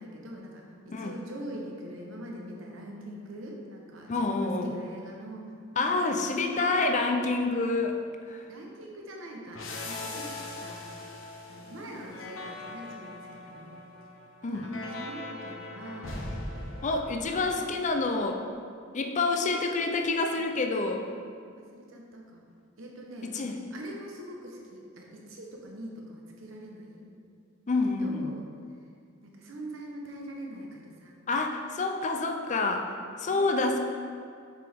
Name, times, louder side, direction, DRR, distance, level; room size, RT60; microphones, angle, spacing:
voice 1, 0.0-5.9 6.2-7.0 8.5-13.8 14.5-16.2 16.5-17.2 17.6-17.7 19.3-19.9 20.3-20.4 21.6-22.4 22.8-23.3 23.7-27.1 28.0-28.4 29.2-31.1 33.3-33.8, right 1 dB, 80° right, -1 dB, 1.0 m, -43 dB
voice 2, 4.1-4.7 5.8-8.0 8.3-8.5 14.4-14.6 16.8-18.4 18.9-21.0 23.2-23.6 27.7-28.3 31.3-32.9 33.2-33.8, left 3 dB, 40° left, 4 dB, 0.5 m, -28 dB
sound 1, 9.5-18.0, left 2 dB, 75° left, 0.9 m, -40 dB
6.7 x 4.9 x 3.5 m, 2.2 s
head